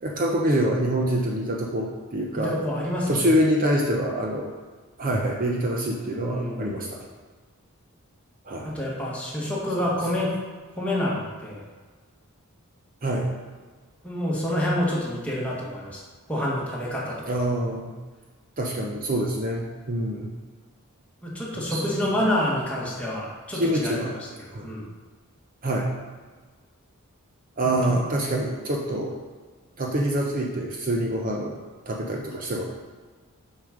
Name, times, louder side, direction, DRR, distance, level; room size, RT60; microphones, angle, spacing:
voice 1, 0.0-2.6 3.1-4.5 5.0-7.0 8.5-8.7 13.0-13.3 17.3-17.9 18.6-20.3 21.5-22.0 23.5-24.1 24.5-24.7 25.6-25.9 27.6-29.1 29.8-31.6 31.9-32.6, right 1 dB, 40° right, -1 dB, 0.8 m, -25 dB
voice 2, 2.4-3.2 6.3-6.7 8.6-10.3 10.8-11.6 14.0-16.0 16.3-17.2 21.2-24.8 27.9-28.0, left 1 dB, 5° left, -6 dB, 1.8 m, -28 dB
6.7 x 6.4 x 5.1 m, 1.4 s
head